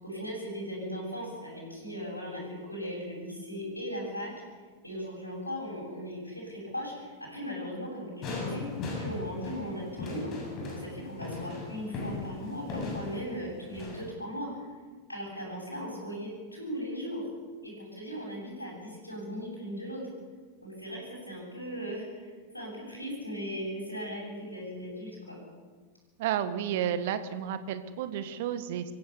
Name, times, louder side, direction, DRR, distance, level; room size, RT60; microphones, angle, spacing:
voice 1, 0.0-4.3 4.8-8.6 9.0-10.3 10.7-14.5 15.1-17.3 17.6-20.0 20.6-25.4, equal, 85° left, -5 dB, 7.7 m, -38 dB
sound 1, 8.2-14.1, left 3 dB, 35° left, 7.3 m, -38 dB
voice 2, 26.2-28.8, right 9 dB, 50° right, 11 dB, 1.6 m, -31 dB
25.5 x 16.0 x 7.1 m, 1.5 s
figure-of-eight pair, 90°, 0 cm